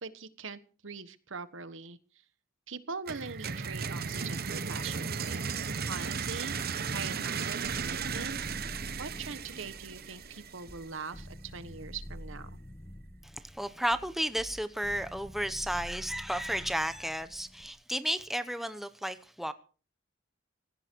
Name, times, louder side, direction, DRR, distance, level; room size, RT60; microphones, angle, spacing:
voice 1, 0.0-2.0 2.7-6.6 6.9-8.4 9.0-12.6, right 4 dB, 65° right, 1.3 m, -42 dB
sound 1, 3.1-10.8, right 5 dB, 50° right, 1.0 m, -35 dB
sound 2, 7.6-17.7, equal, 20° left, 2.0 m, -47 dB
voice 2, 13.2-19.5, equal, ahead, 0.9 m, -33 dB
17.5 x 15.5 x 4.6 m
head